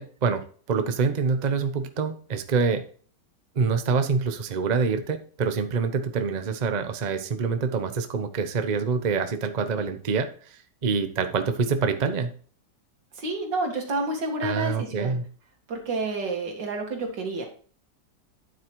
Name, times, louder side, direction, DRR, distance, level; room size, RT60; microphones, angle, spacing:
voice 1, 0.0-2.8 3.5-12.3 14.4-15.2, right 5 dB, 35° right, 8 dB, 0.7 m, -26 dB
voice 2, 13.1-15.2 15.7-17.5, right 2 dB, 85° right, 2 dB, 2.6 m, -29 dB
9.6 x 7.6 x 3.1 m, 0.43 s
omnidirectional pair, 1.9 m